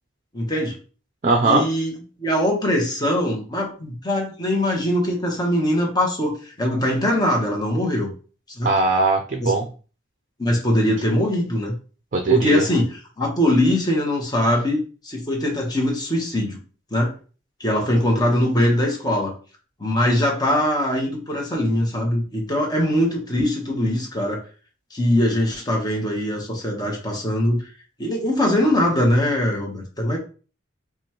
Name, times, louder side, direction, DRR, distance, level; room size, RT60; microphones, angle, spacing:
voice 1, 0.3-0.8 1.4-1.9 2.2-8.1 8.6-8.7 9.4-9.5 10.4-11.7 12.3-16.6 16.9-17.1 17.6-19.3 19.8-24.4 24.9-27.6 28.0-30.2, left 1 dB, 20° left, 0 dB, 1.1 m, -22 dB
voice 2, 1.2-1.7 8.6-9.7 12.1-12.6, right 3 dB, 40° right, 3 dB, 0.5 m, -19 dB
5.1 x 2.4 x 3.0 m, 0.37 s
head